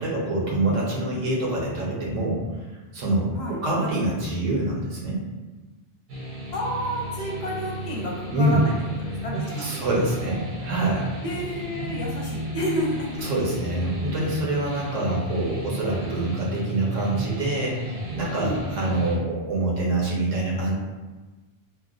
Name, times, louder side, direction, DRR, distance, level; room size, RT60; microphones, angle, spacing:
voice 1, 0.0-2.4 2.9-5.2 8.3-8.6 9.6-11.1 13.2-20.7, right 1 dB, 90° right, -4 dB, 1.1 m, -25 dB
sound 1, 6.1-19.1, right 1 dB, 50° right, 0.7 m, -34 dB
voice 2, 6.5-9.9 11.2-13.1 18.4-18.9, equal, 65° left, -2 dB, 0.8 m, -31 dB
3.0 x 2.1 x 2.3 m, 1.2 s
omnidirectional pair, 1.2 m